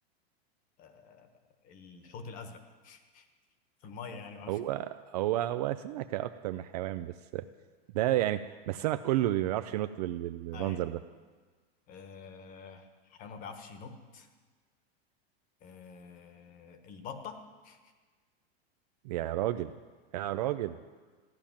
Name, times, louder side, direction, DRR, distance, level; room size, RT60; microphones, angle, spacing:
voice 1, 0.8-1.3 1.6-3.3 3.8-4.6 10.5-10.8 11.9-14.3 15.6-17.8, left 5 dB, 25° left, 8 dB, 1.2 m, -46 dB
voice 2, 4.5-7.4 7.9-11.0 19.0-19.8 20.1-20.8, right 14 dB, 40° right, 11 dB, 0.4 m, -31 dB
15.0 x 10.5 x 7.2 m, 1.4 s
supercardioid pair, 165°, 32 cm